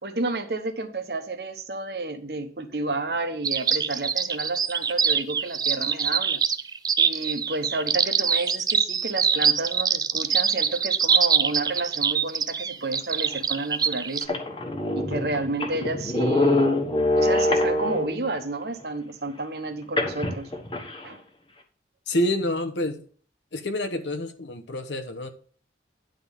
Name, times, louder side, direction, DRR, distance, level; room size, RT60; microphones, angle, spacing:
voice 1, 0.0-6.4 7.0-14.4 14.9-16.9 17.1-20.5 21.0-21.2, right 2 dB, 65° right, 1.1 m, -31 dB
sound 1, 3.4-14.2, right 7 dB, 20° right, 0.4 m, -23 dB
sound 2, 13.3-13.4 13.9-14.0 14.2-18.3 20.0-21.0, left 1 dB, 30° left, 1.3 m, -24 dB
voice 2, 22.1-23.0 23.5-25.3, left 1 dB, 80° left, 1.0 m, -27 dB
10.5 x 3.9 x 7.1 m
head